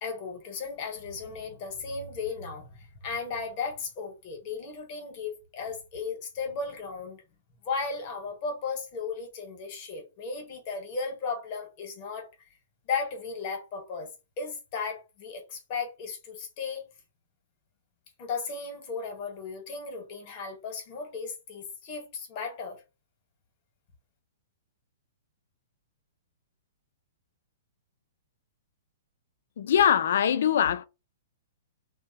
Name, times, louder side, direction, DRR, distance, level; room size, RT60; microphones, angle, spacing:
voice 1, 0.0-7.2 7.6-12.3 12.8-14.1 14.4-16.9 18.2-22.8, left 5 dB, 45° left, 1.2 m, -35 dB
voice 2, 29.6-30.8, left 9 dB, 70° left, 0.3 m, -22 dB
2.6 x 2.2 x 2.7 m
hypercardioid pair, 135°, 0 cm